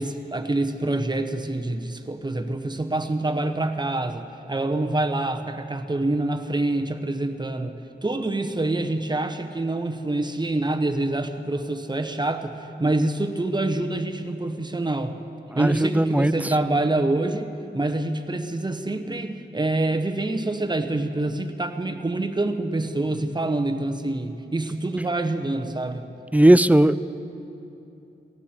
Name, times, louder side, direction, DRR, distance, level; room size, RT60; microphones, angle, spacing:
voice 1, 0.0-15.2 15.5-26.0, right 2 dB, 25° right, 7 dB, 1.0 m, -26 dB
voice 2, 15.5-16.5 26.3-27.2, right 1 dB, 10° right, 14 dB, 0.4 m, -18 dB
18.0 x 15.0 x 4.5 m, 2.9 s
wide cardioid pair, 70°, 18 cm